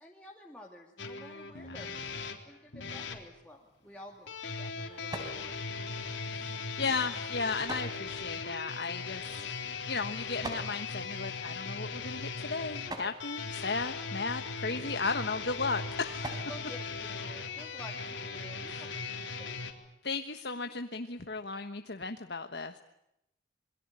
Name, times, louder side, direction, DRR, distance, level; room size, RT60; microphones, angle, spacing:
voice 1, 0.0-1.9 2.5-5.6 5.8-6.1 16.5-18.7 19.4-19.7, left 1 dB, 5° left, -1 dB, 2.4 m, -50 dB
sound 1, 1.0-3.2 4.3-19.7, left 4 dB, 80° left, 3.8 m, -39 dB
sound 2, 3.5-17.8, right 1 dB, 20° right, 3.9 m, -49 dB
voice 2, 6.2-9.6 9.9-16.5 18.6-18.9 20.0-22.8, left 4 dB, 60° left, 6 dB, 1.3 m, -35 dB
27.5 x 23.0 x 8.9 m, 0.83 s
head